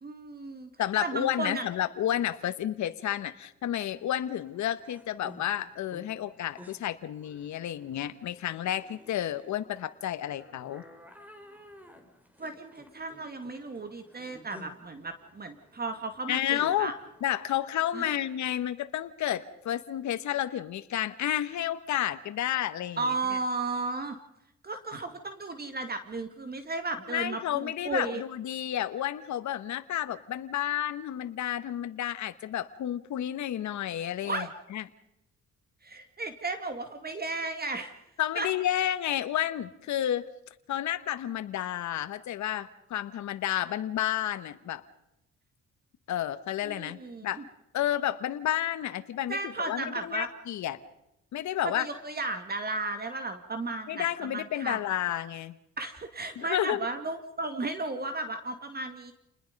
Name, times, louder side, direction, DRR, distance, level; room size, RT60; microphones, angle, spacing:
voice 1, 0.0-0.7 1.0-1.7 12.4-16.9 17.9-18.2 23.0-24.2 24.6-28.2 34.3-34.5 35.8-38.0 38.3-38.5 46.6-47.4 49.3-50.3 51.6-54.8 55.8-59.1, right 3 dB, 30° right, 8 dB, 2.3 m, -34 dB
voice 2, 0.8-10.8 16.3-16.9 17.2-23.1 27.1-34.5 34.7-34.8 38.2-40.2 40.7-44.8 46.1-47.4 47.7-50.8 51.3-51.8 53.9-55.5 56.4-56.9, left 11 dB, 70° left, 10 dB, 1.3 m, -31 dB
sound 1, 4.1-17.9, left 1 dB, 5° right, 3.9 m, -54 dB
29.0 x 20.5 x 5.3 m, 0.85 s
cardioid pair, 90°, 30 cm